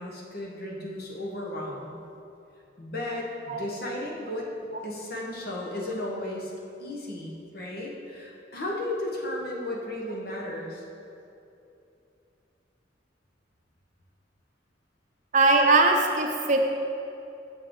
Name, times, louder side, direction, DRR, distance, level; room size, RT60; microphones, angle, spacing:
voice 1, 0.0-1.9 2.8-6.5 6.8-10.8, left 1 dB, 55° left, -2 dB, 1.2 m, -34 dB
voice 2, 15.3-16.7, right 3 dB, 40° right, 2 dB, 0.6 m, -20 dB
7.4 x 6.3 x 3.8 m, 2.8 s
head